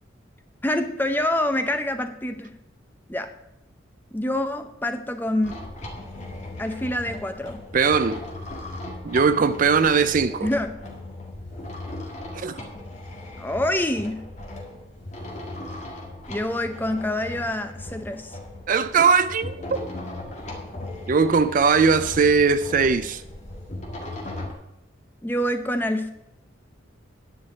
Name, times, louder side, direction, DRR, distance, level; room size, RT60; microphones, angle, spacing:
voice 1, 0.6-2.5 3.1-3.3 4.1-5.6 6.6-7.6 10.4-10.8 13.4-14.2 16.3-18.4 25.2-26.1, left 1 dB, 10° left, 0.6 m, -26 dB
sound 1, 5.4-24.5, left 1 dB, 35° left, 1.7 m, -38 dB
voice 2, 7.7-8.2 9.0-10.5 12.3-12.6 18.7-19.9 21.1-23.2, right 5 dB, 40° right, 0.4 m, -20 dB
10.0 x 4.9 x 8.1 m
head